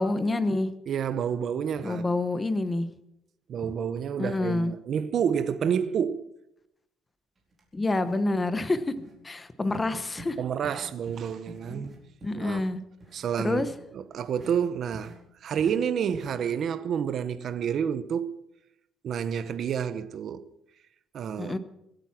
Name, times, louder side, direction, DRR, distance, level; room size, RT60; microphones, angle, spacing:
voice 1, 0.0-0.7 1.8-2.9 4.2-4.7 7.7-8.9 9.2-10.4 11.7-11.9 12.2-12.8 13.4-13.7 21.4-21.6, left 2 dB, 15° left, 1.0 m, -27 dB
voice 2, 0.9-2.1 3.5-6.3 10.4-12.0 12.4-12.6 13.1-13.6 13.9-18.4 19.0-20.5 21.1-21.6, right 8 dB, 45° right, 0.8 m, -29 dB
sound 1, 7.5-7.6 8.0-8.2 8.5-8.7 9.0-9.1 9.7-9.9 10.2-10.4 10.6-10.8 11.1-11.2 11.5-12.7 13.0-13.2 13.6-13.7 14.4-14.5 14.9-15.2 15.6-15.7 16.1-16.3, right 1 dB, 20° right, 4.3 m, -46 dB
25.0 x 9.1 x 5.9 m
cardioid pair, 180°, 0 cm